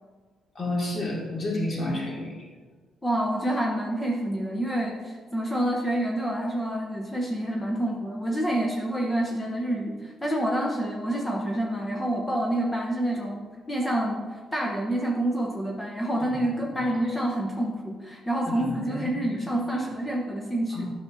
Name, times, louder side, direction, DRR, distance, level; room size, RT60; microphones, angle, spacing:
voice 1, 0.6-2.3 16.2-16.3 16.7-16.9 18.5-19.9 20.7-20.8, left 1 dB, 40° left, -2 dB, 2.0 m, -31 dB
voice 2, 3.0-20.8, right 1 dB, 15° left, -1 dB, 0.8 m, -28 dB
9.6 x 5.7 x 2.7 m, 1.5 s
cardioid pair, 90°, 0 cm